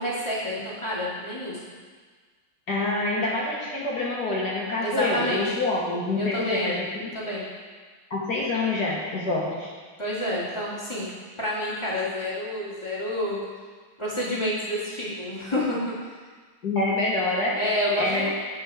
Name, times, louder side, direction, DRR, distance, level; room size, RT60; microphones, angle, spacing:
voice 1, 0.0-1.6 4.8-5.6 6.2-6.8 7.1-7.4 10.0-13.4 14.0-16.0 17.6-18.3, left 1 dB, 15° left, -8 dB, 2.0 m, -29 dB
voice 2, 2.7-7.1 8.1-9.7 16.6-17.6 18.0-18.3, left 2 dB, 50° left, -5 dB, 1.6 m, -26 dB
8.0 x 6.9 x 4.9 m, 1.5 s
omnidirectional pair, 2.4 m